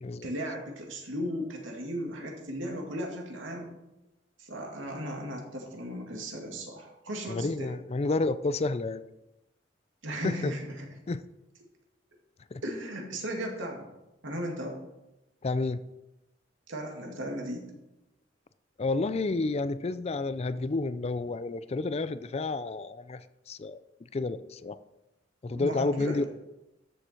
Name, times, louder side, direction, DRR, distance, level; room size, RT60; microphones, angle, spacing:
voice 1, 0.2-3.7 4.4-7.7 10.0-10.9 12.6-13.9 14.2-14.8 16.7-17.7 25.5-26.3, equal, 85° right, 1 dB, 2.3 m, -36 dB
voice 2, 7.3-9.0 10.2-10.5 11.1-11.2 12.5-12.6 15.4-15.8 18.8-23.8 24.1-24.8 25.4-26.2, left 3 dB, 35° left, 14 dB, 0.4 m, -30 dB
13.0 x 7.1 x 4.5 m, 0.95 s
head